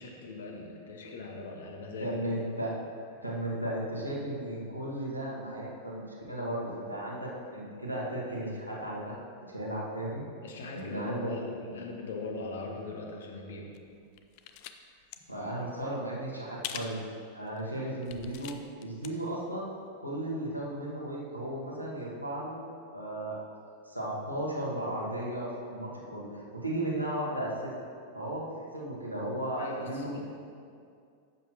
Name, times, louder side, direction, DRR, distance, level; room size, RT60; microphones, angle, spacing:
voice 1, 0.0-2.3 10.4-13.7 29.6-30.2, left 3 dB, 60° left, 1 dB, 1.2 m, -40 dB
voice 2, 2.0-2.7 3.2-9.2 9.5-10.2 10.7-11.3 15.3-17.0 17.3-18.5 18.8-19.7 20.0-22.6 22.9-23.4 23.8-26.2 26.6-27.7 28.1-28.4 28.7-30.2, right 1 dB, 90° right, -6 dB, 1.6 m, -35 dB
sound 1, 13.7-14.8 15.0-15.2 16.6-17.0 17.5-17.6 18.0-19.1 19.4-19.5, left 10 dB, 45° left, 0.4 m, -42 dB
11.0 x 7.2 x 2.9 m, 2.3 s
figure-of-eight pair, 90°, 0 cm